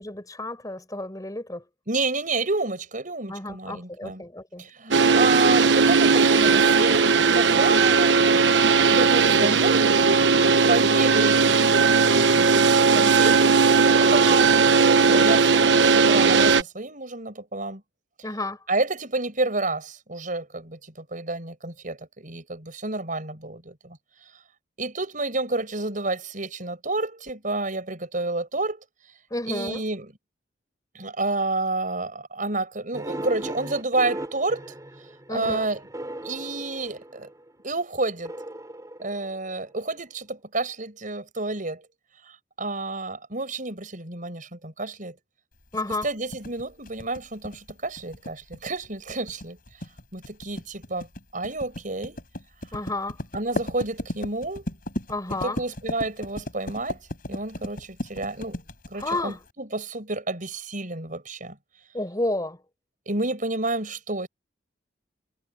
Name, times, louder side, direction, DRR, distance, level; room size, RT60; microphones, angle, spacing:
voice 1, 0.0-1.6 3.3-4.7 15.1-15.4 18.2-18.6 29.3-29.8 35.3-35.7 45.7-46.1 52.7-53.2 55.1-55.6 59.0-59.4 61.9-62.6, left 2 dB, 20° left, 6.1 m, -31 dB
voice 2, 1.9-4.2 4.6-8.2 8.9-10.0 10.7-14.6 15.0-17.8 18.7-24.0 24.8-28.8 29.5-30.1 31.0-34.7 35.3-35.8 36.2-37.3 37.6-38.3 39.0-41.9 42.3-45.2 46.0-49.6 50.1-51.1 51.3-52.2 53.3-54.7 55.4-57.0 57.3-58.6 58.9-61.6 63.1-64.3, right 2 dB, 50° right, 6.8 m, -29 dB
sound 1, 4.9-16.6, right 5 dB, 85° right, 1.1 m, -18 dB
sound 2, 32.9-37.5 38.2-39.8, right 1 dB, 20° right, 2.9 m, -37 dB
sound 3, 45.7-59.5, left 1 dB, 50° left, 5.6 m, -35 dB
head